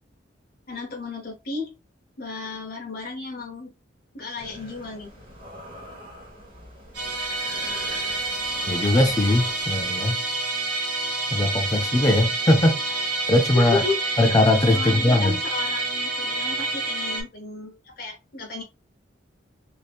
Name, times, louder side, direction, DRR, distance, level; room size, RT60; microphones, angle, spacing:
voice 1, 0.7-1.7 2.2-3.7 4.1-5.1 13.5-14.4 14.7-18.6, left 3 dB, 50° left, 0.7 m, -33 dB
sound 1, 4.4-9.9, equal, 25° right, 1.0 m, -43 dB
Musical instrument, 6.9-17.2, right 2 dB, 75° right, 1.4 m, -28 dB
voice 2, 8.7-10.2 11.3-13.8 14.2-15.4, left 1 dB, 20° left, 0.4 m, -20 dB
3.4 x 2.7 x 2.3 m
head